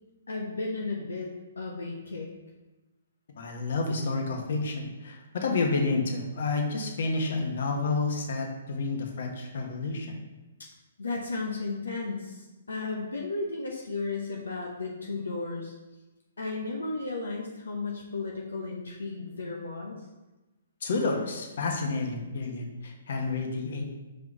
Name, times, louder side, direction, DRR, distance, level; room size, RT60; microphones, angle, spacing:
voice 1, 0.3-1.3 1.6-2.3 11.0-15.7 16.4-20.0, left 3 dB, 85° left, 0 dB, 0.9 m, -34 dB
voice 2, 3.4-10.2 20.8-23.8, left 3 dB, 60° left, 2 dB, 1.3 m, -30 dB
4.7 x 4.6 x 4.8 m, 1.1 s
hypercardioid pair, 140°, 0 cm